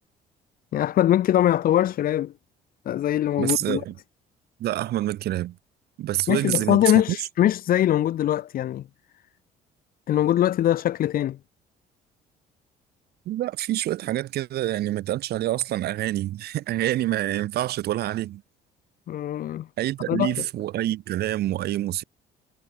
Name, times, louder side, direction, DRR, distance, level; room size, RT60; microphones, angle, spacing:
voice 1, 0.7-2.3 2.8-3.8 6.3-8.8 10.1-11.4 19.1-19.7 20.1-20.3, left 12 dB, 60° left, 1.4 m, -22 dB
voice 2, 3.4-3.9 4.6-5.6 6.0-6.8 13.3-18.4 19.8-22.0, right 14 dB, 70° right, 3.6 m, -27 dB
cardioid pair, 110°, 17 cm